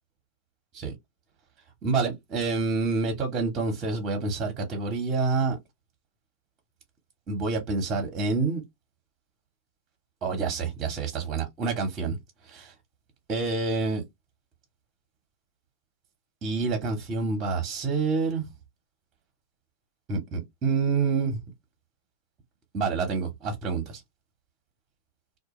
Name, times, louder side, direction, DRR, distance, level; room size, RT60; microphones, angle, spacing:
voice 1, 1.8-5.6 7.3-8.6 10.2-12.2 12.4-12.7 13.3-14.0 16.4-18.5 20.1-21.4 22.7-24.0, right 4 dB, 30° right, 0.9 m, -27 dB
2.2 x 2.1 x 2.9 m
hypercardioid pair, 105°, 0 cm